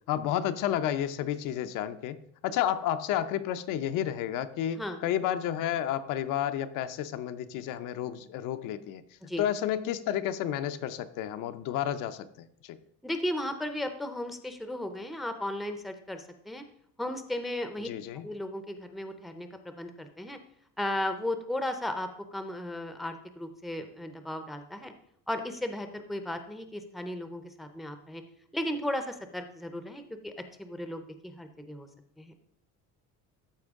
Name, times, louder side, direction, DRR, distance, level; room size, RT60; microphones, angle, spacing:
voice 1, 0.1-2.2 2.4-9.0 9.4-12.8 17.8-18.3, left 11 dB, 70° left, 10 dB, 0.7 m, -31 dB
voice 2, 13.0-16.6 17.0-17.9 18.2-20.4 20.8-24.9 25.3-28.2 28.5-30.3 30.6-31.9 32.2-32.3, left 1 dB, ahead, 7 dB, 0.5 m, -35 dB
13.0 x 4.5 x 3.6 m, 0.67 s
cardioid pair, 150°, 32 cm